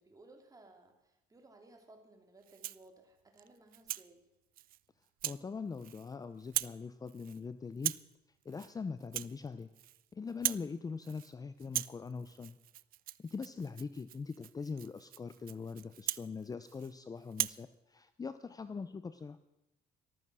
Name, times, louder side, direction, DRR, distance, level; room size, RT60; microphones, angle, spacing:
voice 1, 0.0-4.3 18.7-18.9, right 2 dB, 20° right, 3 dB, 2.9 m, -60 dB
Rattle (instrument), 2.4-2.9 3.4-4.1 4.6-4.8 5.2-5.4 5.7-6.1 6.4-6.8 7.1-7.4 7.8-8.1 8.5-8.7 9.0-10.0 10.3-10.7 11.0-11.3 11.6-16.9 17.3-17.6, right 15 dB, 60° right, 0.4 m, -40 dB
voice 2, 5.2-8.0 8.4-9.7 10.1-12.6 13.2-19.4, left 5 dB, 20° left, 12 dB, 0.6 m, -42 dB
14.0 x 13.0 x 6.3 m, 0.90 s
cardioid pair, 110°, 17 cm